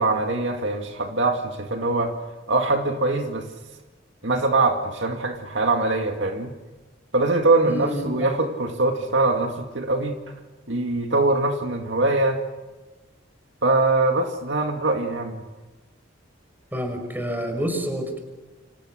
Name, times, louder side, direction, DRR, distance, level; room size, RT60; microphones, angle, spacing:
voice 1, 0.0-2.1 2.5-3.5 4.2-6.5 7.1-10.2 10.7-12.4 13.6-15.4, right 2 dB, 70° right, 3 dB, 2.2 m, -22 dB
voice 2, 7.7-8.3 16.7-18.2, equal, 10° right, 5 dB, 5.6 m, -28 dB
29.5 x 26.0 x 6.5 m, 1.2 s
head